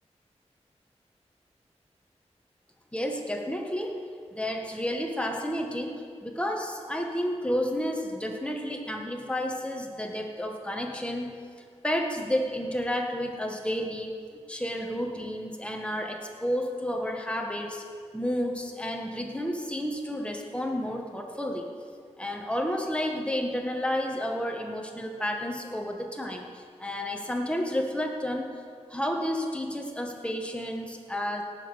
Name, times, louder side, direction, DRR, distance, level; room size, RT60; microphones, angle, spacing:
voice 1, 2.9-4.1 4.3-11.4 11.8-14.1 14.5-17.9 18.1-21.7 22.2-28.5 28.9-31.4, equal, 10° left, 2 dB, 1.9 m, -31 dB
18.0 x 7.6 x 6.4 m, 2.1 s
wide cardioid pair, 65°, 12 cm